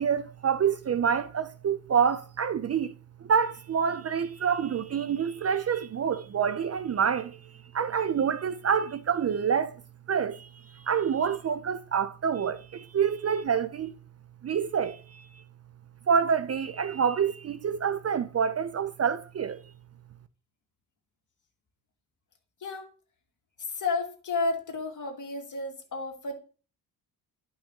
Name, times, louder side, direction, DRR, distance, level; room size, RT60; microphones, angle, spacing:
voice 1, 0.0-2.9 3.2-9.8 10.1-13.9 14.4-15.3 16.1-19.6, right 7 dB, 40° right, 0.5 m, -27 dB
voice 2, 22.6-22.9 23.7-26.3, left 3 dB, 45° left, 2.2 m, -32 dB
11.5 x 5.5 x 2.9 m
cardioid pair, 75°, 41 cm